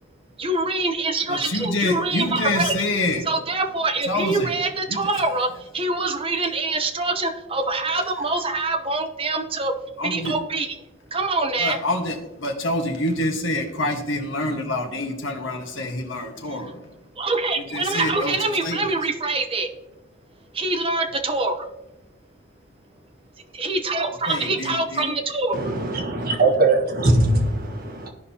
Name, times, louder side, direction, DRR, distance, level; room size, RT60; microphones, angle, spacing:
voice 1, 0.4-2.7 3.2-9.7 10.0-10.8 11.1-11.8 16.4-16.6 17.2-19.7 20.5-21.6 23.5-25.6, right 3 dB, 25° right, 5 dB, 0.9 m, -25 dB
voice 2, 1.3-3.2 4.1-4.5 4.9-5.1 10.0-10.3 11.6-16.8 17.7-18.3 18.6-18.8 24.1-25.1, left 1 dB, 65° left, 2 dB, 1.4 m, -26 dB
voice 3, 25.5-28.1, right 2 dB, 45° right, 1 dB, 1.5 m, -21 dB
14.5 x 5.2 x 2.9 m, 0.95 s
head